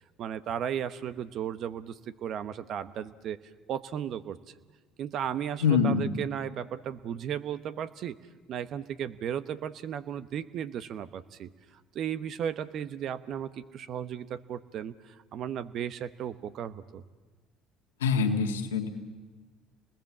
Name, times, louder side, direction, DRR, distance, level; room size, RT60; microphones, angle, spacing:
voice 1, 0.2-3.4 3.7-4.4 5.0-8.2 8.5-11.5 11.9-17.0, right 9 dB, 55° right, 13 dB, 1.1 m, -35 dB
voice 2, 5.6-6.1 18.0-18.9, left 5 dB, 90° left, 5 dB, 1.8 m, -24 dB
29.5 x 20.5 x 7.4 m, 1.3 s
hypercardioid pair, 65°, 0 cm